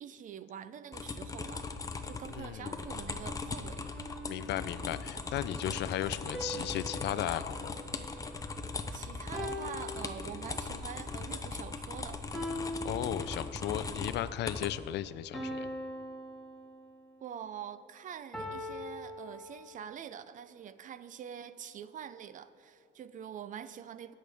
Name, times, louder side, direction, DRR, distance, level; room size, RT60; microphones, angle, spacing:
voice 1, 0.0-1.7 2.0-3.9 8.9-12.2 17.2-24.1, right 9 dB, 40° right, 0.4 m, -45 dB
sound 1, 0.9-14.7, left 3 dB, 15° left, 0.6 m, -39 dB
voice 2, 2.3-2.8 4.3-7.7 12.8-15.7, left 12 dB, 60° left, 0.4 m, -35 dB
sound 2, 3.9-5.1 6.3-8.8 9.3-10.8 12.3-13.8 15.3-17.2 18.3-20.0, equal, ahead, 1.6 m, -42 dB
19.0 x 6.5 x 3.4 m
cardioid pair, 125°, 20 cm